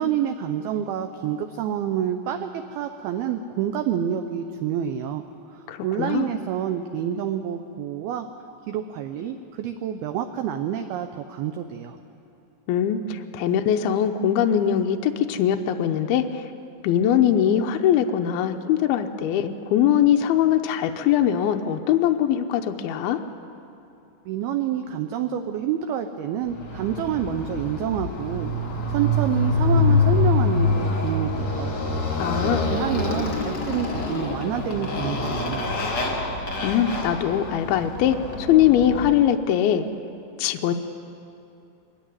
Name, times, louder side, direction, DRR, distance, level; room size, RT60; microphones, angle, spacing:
voice 1, 0.0-5.2 5.5-8.3 8.7-12.0 24.3-28.5 28.9-31.7 32.4-35.8, right 9 dB, 85° right, 7 dB, 2.2 m, -28 dB
voice 2, 5.7-6.3 12.7-16.4 16.8-23.2 32.2-32.7 36.6-39.9 40.4-40.7, left 10 dB, 85° left, 5 dB, 2.2 m, -21 dB
Motorcycle, 26.5-39.3, left 3 dB, 45° left, 1.5 m, -25 dB
22.5 x 15.0 x 9.5 m, 2.7 s
omnidirectional pair, 5.4 m